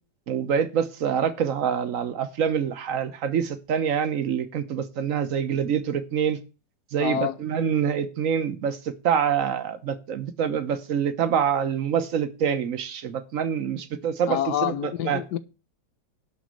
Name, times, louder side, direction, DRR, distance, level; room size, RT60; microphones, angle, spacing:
voice 1, 0.3-6.4 6.9-15.2, right 8 dB, 55° right, 1.3 m, -26 dB
voice 2, 7.0-7.4 14.3-15.4, left 10 dB, 75° left, 1.3 m, -27 dB
11.5 x 4.1 x 7.6 m
omnidirectional pair, 1.9 m